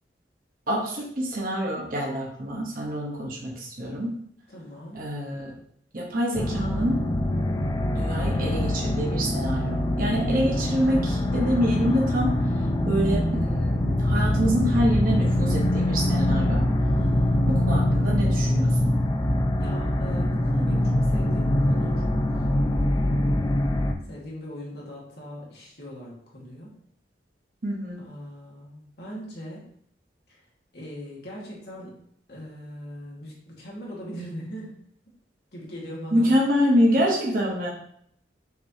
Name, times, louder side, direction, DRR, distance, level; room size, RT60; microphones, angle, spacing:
voice 1, 0.7-4.2 4.9-5.5 5.9-7.0 7.9-12.4 12.8-16.7 17.5-19.0 27.6-28.0 36.1-37.7, equal, 50° right, -2 dB, 0.9 m, -26 dB
voice 2, 4.5-5.0 16.9-17.5 19.6-22.5 24.1-26.7 28.0-29.7 30.3-30.4 30.7-32.0 32.3-34.7 35.5-36.3 37.0-37.1, equal, 65° left, -4 dB, 1.5 m, -40 dB
sound 1, 6.3-23.9, left 1 dB, 25° left, 0.4 m, -24 dB
5.9 x 3.0 x 2.7 m, 0.67 s
head